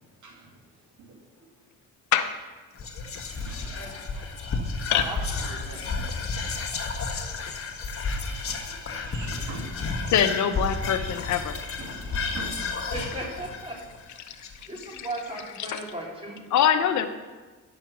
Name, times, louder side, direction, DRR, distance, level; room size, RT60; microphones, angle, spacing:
voice 1, 1.0-1.5 3.3-3.9 6.8-8.3 8.6-10.1 10.5-11.1 11.8-12.5 12.8-12.9, right 2 dB, 70° right, -1 dB, 2.5 m, -45 dB
Whispering, 2.8-15.2, left 4 dB, 45° left, 1.4 m, -32 dB
voice 2, 3.7-4.3 4.9-6.0 12.9-13.8 14.2-14.4 14.7-16.4, right 1 dB, 20° right, -3 dB, 3.2 m, -37 dB
voice 3, 10.1-11.6 14.3-14.5 14.8-15.1 15.6-15.8 16.5-17.1, left 9 dB, 70° left, 10 dB, 0.8 m, -24 dB
10.0 x 6.4 x 6.1 m, 1.3 s
cardioid pair, 90°, 30 cm